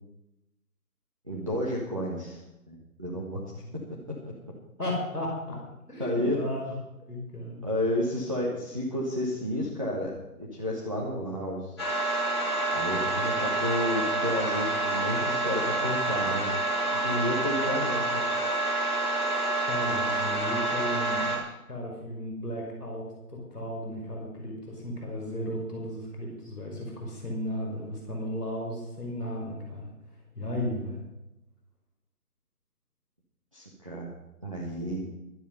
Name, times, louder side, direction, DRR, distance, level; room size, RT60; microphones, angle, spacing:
voice 1, 1.3-2.4 2.7-3.4 6.0-6.4 7.6-11.8 12.7-16.5 16.9-18.2 33.5-34.1 34.4-35.1, left 1 dB, 20° right, -5 dB, 1.4 m, -31 dB
voice 2, 4.8-5.6 5.9-6.6 7.1-7.7 19.7-21.4 21.7-29.9 30.3-31.0, left 1 dB, ahead, -18 dB, 2.2 m, -35 dB
sound 1, 11.8-21.4, right 2 dB, 15° left, 2.6 m, -28 dB
12.5 x 12.5 x 5.3 m, 0.92 s
figure-of-eight pair, 180°, 46 cm